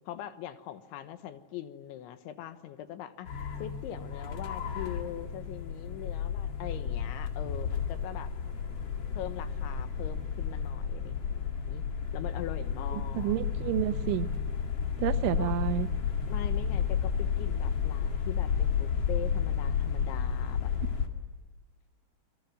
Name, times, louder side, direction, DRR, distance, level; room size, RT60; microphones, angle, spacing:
voice 1, 0.1-3.3 3.6-8.3 9.2-11.9 12.1-13.9 15.4-15.6 16.3-20.7, left 11 dB, 85° left, 10 dB, 3.6 m, -42 dB
sound 1, 3.3-21.1, left 7 dB, 45° left, 2.4 m, -32 dB
voice 2, 12.9-14.3 15.0-15.9, right 13 dB, 90° right, 10 dB, 3.5 m, -30 dB
27.5 x 22.5 x 9.4 m, 1.4 s
omnidirectional pair, 5.3 m